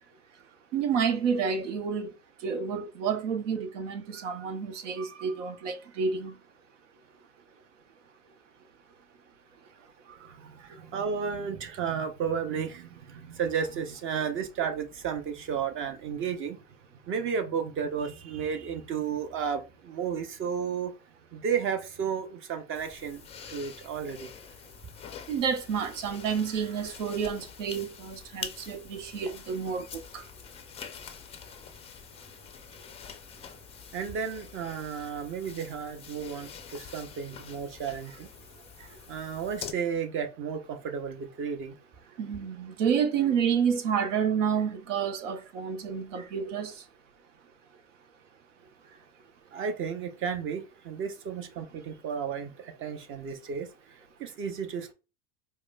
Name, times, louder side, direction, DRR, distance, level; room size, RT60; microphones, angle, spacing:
voice 1, 0.7-2.1 2.4-6.3 25.3-30.2 42.2-46.7, right 7 dB, 85° right, 0.7 m, -29 dB
voice 2, 10.3-16.6 17.0-20.9 21.3-24.3 33.9-38.3 39.1-41.7 49.5-54.9, right 7 dB, 35° right, 0.7 m, -33 dB
sound 1, 22.7-39.7, left 7 dB, 15° left, 0.4 m, -46 dB
4.7 x 2.1 x 2.2 m
hypercardioid pair, 105°, 37 cm